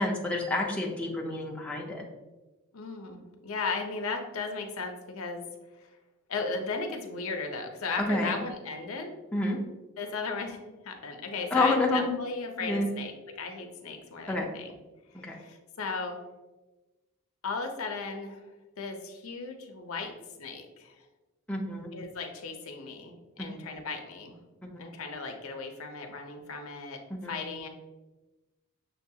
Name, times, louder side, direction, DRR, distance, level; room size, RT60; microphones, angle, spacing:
voice 1, 0.0-2.0 8.0-8.4 9.3-9.6 11.5-12.1 12.6-12.9 14.3-14.5 15.1-15.4 21.5-21.9 23.4-23.5 24.6-24.8 27.2-27.4, left 2 dB, 5° left, -2 dB, 0.4 m, -29 dB
voice 2, 2.7-5.4 6.3-9.2 10.0-14.7 15.2-16.2 17.4-18.4 18.8-20.1 20.4-21.0 21.9-24.4 24.8-27.0 27.3-27.7, left 4 dB, 70° left, 4 dB, 0.6 m, -36 dB
6.3 x 2.3 x 2.7 m, 1.1 s
head